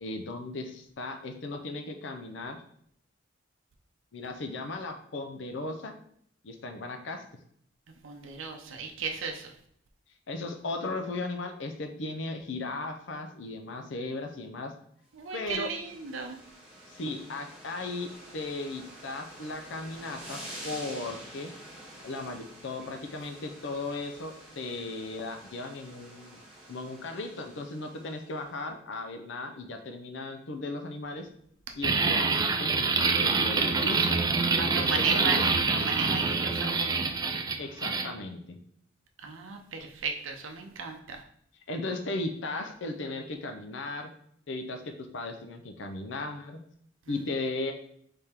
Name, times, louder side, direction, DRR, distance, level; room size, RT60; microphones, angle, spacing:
voice 1, 0.0-2.6 4.1-5.9 6.4-7.3 10.3-14.7 15.3-15.7 16.9-18.1 18.3-21.5 22.0-26.4 26.7-31.3 31.7-34.2 34.6-35.4 37.6-38.6 41.7-44.1 44.5-46.6 47.1-47.7, left 2 dB, 65° left, 5 dB, 0.6 m, -36 dB
voice 2, 8.0-9.5 15.2-16.4 34.6-37.0 39.2-41.2, right 4 dB, 80° right, 3 dB, 0.6 m, -35 dB
sound 1, 15.2-28.5, right 1 dB, 5° right, 1.0 m, -48 dB
sound 2, 31.8-38.1, right 4 dB, 20° right, 0.3 m, -26 dB
3.5 x 3.4 x 4.3 m, 0.66 s
head